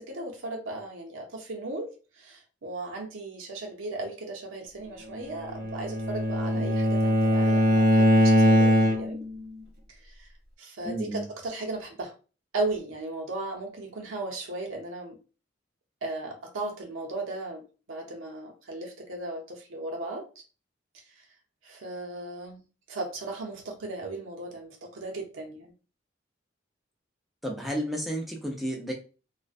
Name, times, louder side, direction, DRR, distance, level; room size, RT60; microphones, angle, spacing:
voice 1, 0.0-1.9 2.2-9.2 9.9-10.3 10.6-12.1 12.5-15.2 16.0-17.6 17.9-20.3 21.6-22.6 22.9-25.7, right 2 dB, 90° right, 0.6 m, -36 dB
Bowed string instrument, 5.3-9.3, equal, 50° right, 0.5 m, -21 dB
voice 2, 10.8-11.3 27.4-28.9, right 1 dB, ahead, 0.5 m, -32 dB
2.5 x 2.1 x 2.4 m
head